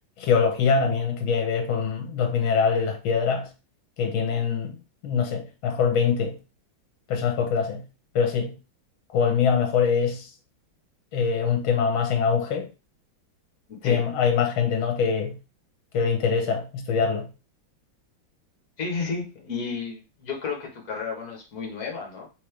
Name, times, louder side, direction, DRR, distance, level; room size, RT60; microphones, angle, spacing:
voice 1, 0.2-3.5 4.0-4.8 5.0-6.4 7.1-7.8 8.1-8.6 9.1-10.3 11.1-12.7 13.8-15.4 15.9-17.3, left 6 dB, 80° left, 1.6 m, -23 dB
voice 2, 13.7-14.0 18.8-22.3, left 5 dB, 50° left, 1.6 m, -32 dB
3.6 x 3.2 x 3.2 m
omnidirectional pair, 2.2 m